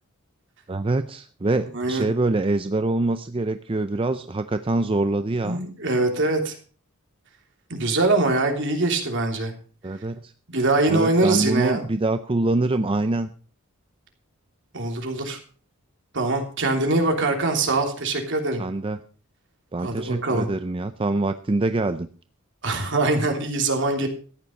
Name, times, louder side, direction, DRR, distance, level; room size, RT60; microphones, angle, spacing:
voice 1, 0.7-5.6 9.8-10.3 10.9-13.3 18.6-19.0 19.7-22.1, right 2 dB, 25° right, 10 dB, 0.5 m, -25 dB
voice 2, 1.7-2.1 5.4-6.5 7.7-9.5 10.5-11.8 14.7-15.4 16.1-18.6 19.8-20.5 22.6-24.1, right 2 dB, 60° right, 3 dB, 3.2 m, -23 dB
14.0 x 9.7 x 5.3 m, 0.39 s
head